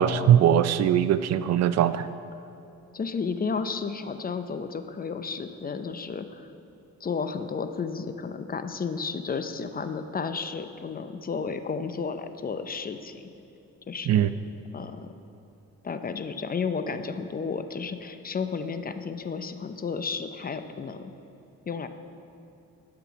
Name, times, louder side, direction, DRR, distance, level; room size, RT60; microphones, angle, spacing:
voice 1, 0.0-2.1 14.1-14.3, right 10 dB, 60° right, 13 dB, 0.4 m, -21 dB
voice 2, 2.9-6.5 7.0-13.3 13.9-14.3 14.7-15.1 15.8-21.1 21.7-21.9, left 5 dB, 30° left, 9 dB, 0.6 m, -32 dB
11.5 x 5.9 x 5.9 m, 2.6 s
cardioid pair, 90°, 30 cm